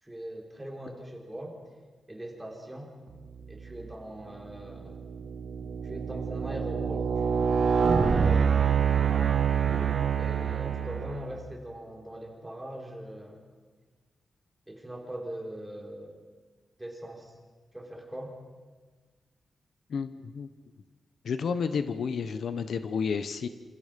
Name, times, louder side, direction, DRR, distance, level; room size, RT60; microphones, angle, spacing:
voice 1, 0.0-1.6 2.1-2.9 3.5-5.0 5.8-8.6 10.2-13.4 14.7-16.2 16.8-17.3 17.7-18.4, right 1 dB, 10° right, 1 dB, 4.1 m, -41 dB
sound 1, 3.6-3.9 4.5-11.4, right 6 dB, 55° right, 1.4 m, -26 dB
voice 2, 19.9-20.5 21.2-23.5, left 6 dB, 65° left, 11 dB, 1.1 m, -31 dB
28.0 x 28.0 x 5.3 m, 1.4 s
wide cardioid pair, 165°, 0 cm